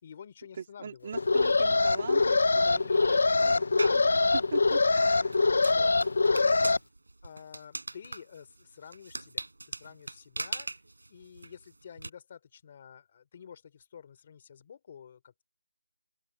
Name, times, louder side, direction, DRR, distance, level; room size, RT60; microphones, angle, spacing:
voice 1, 0.0-1.2 2.4-4.3 5.3-5.9 6.2-6.8 7.2-10.7 11.1-15.4, left 8 dB, 20° left, 3.5 m, -50 dB
voice 2, 0.6-3.6 4.5-5.5, right 7 dB, 20° right, 2.2 m, -42 dB
Alarm, 1.1-6.8, left 3 dB, 45° left, 0.9 m, -24 dB
sound 1, 3.8-4.1 4.7-12.1, right 2 dB, 70° right, 7.7 m, -40 dB
open air
figure-of-eight pair, 180°, 0 cm